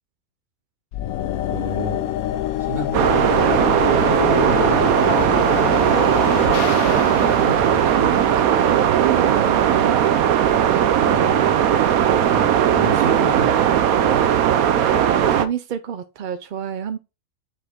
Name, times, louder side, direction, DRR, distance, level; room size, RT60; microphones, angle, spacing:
sound 1, 0.9-9.0, left 12 dB, 90° left, 1.1 m, -26 dB
voice 1, 1.5-2.1 2.6-3.8 4.1-5.7 11.0-11.6 12.3-14.3, right 1 dB, 35° right, 1.7 m, -31 dB
sound 2, 2.9-15.5, right 9 dB, 85° right, 1.2 m, -18 dB
voice 2, 6.5-10.0 15.1-17.0, right 8 dB, 60° right, 0.5 m, -30 dB
6.4 x 5.2 x 3.6 m
omnidirectional pair, 1.5 m